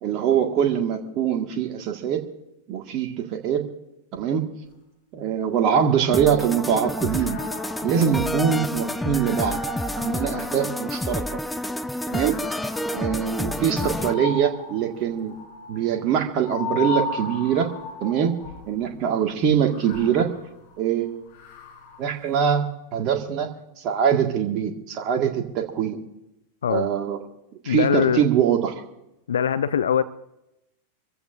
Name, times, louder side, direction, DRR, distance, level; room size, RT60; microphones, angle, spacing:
voice 1, 0.0-2.3 2.7-3.6 4.1-4.5 5.1-7.4 7.8-9.6 10.0-11.4 12.1-15.3 15.7-17.7 18.0-18.3 18.7-20.3 20.8-21.3 22.0-22.6 22.9-26.0 26.7-27.2 27.6-28.8, right 8 dB, 40° right, 3 dB, 1.8 m, -23 dB
sound 1, 5.4-6.6 7.0-11.4 12.1-18.8 19.5-22.1, left 3 dB, 50° left, 4.1 m, -36 dB
sound 2, 6.1-14.1, left 1 dB, 5° left, 0.5 m, -29 dB
voice 2, 27.6-28.2 29.3-30.0, left 8 dB, 65° left, 14 dB, 0.5 m, -22 dB
26.0 x 15.0 x 2.6 m, 0.88 s
figure-of-eight pair, 90°, 0 cm